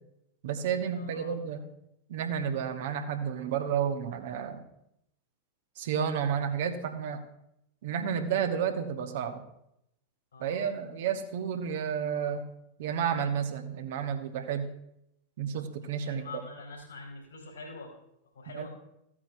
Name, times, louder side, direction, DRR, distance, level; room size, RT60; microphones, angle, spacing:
voice 1, 0.4-1.6 2.1-4.6 5.8-7.2 7.8-9.4 10.4-12.4 12.8-14.7 15.4-16.3 18.5-18.7, right 7 dB, 55° right, 7 dB, 0.9 m, -31 dB
voice 2, 0.9-1.3 10.3-10.7 16.0-17.9 18.3-18.7, left 3 dB, 70° left, 0 dB, 3.2 m, -44 dB
14.5 x 8.6 x 2.6 m, 0.80 s
figure-of-eight pair, 90°, 0 cm